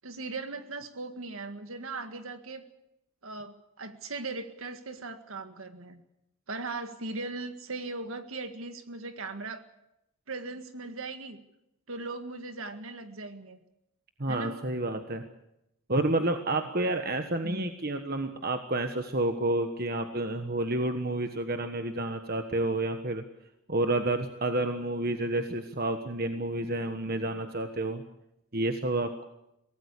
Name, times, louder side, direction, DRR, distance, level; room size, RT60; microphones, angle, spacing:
voice 1, 0.0-2.6 3.2-6.0 6.5-9.6 10.3-11.4 11.9-13.6 14.3-14.6 17.4-17.7, right 3 dB, 70° right, 8 dB, 1.8 m, -38 dB
voice 2, 14.2-15.2 15.9-23.2 23.7-28.0 28.5-29.3, right 2 dB, 45° right, 7 dB, 1.4 m, -30 dB
23.5 x 18.0 x 8.4 m, 0.84 s
head